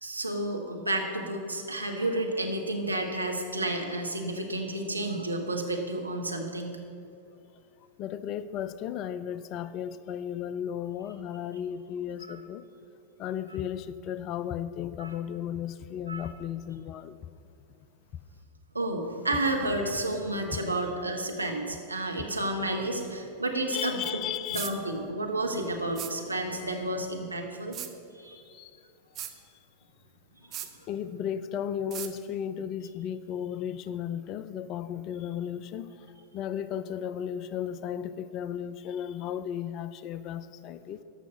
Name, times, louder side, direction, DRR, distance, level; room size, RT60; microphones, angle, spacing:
voice 1, 0.0-6.8 12.3-12.4 15.0-15.1 16.1-16.2 18.7-24.0 24.5-27.8 28.1-28.4 30.6-30.9, right 1 dB, 85° right, 2 dB, 1.0 m, -31 dB
voice 2, 8.0-12.6 13.2-17.3 20.3-20.6 23.7-24.7 28.5-28.7 29.3-29.4 30.9-36.1 36.3-41.0, left 9 dB, 40° left, 14 dB, 0.4 m, -35 dB
sound 1, 24.5-24.7 26.0-26.1 27.7-27.9 29.2-29.3 30.5-30.7 31.9-32.1, right 11 dB, 30° right, 0.6 m, -36 dB
13.5 x 5.7 x 5.3 m, 2.5 s
figure-of-eight pair, 90°, 0 cm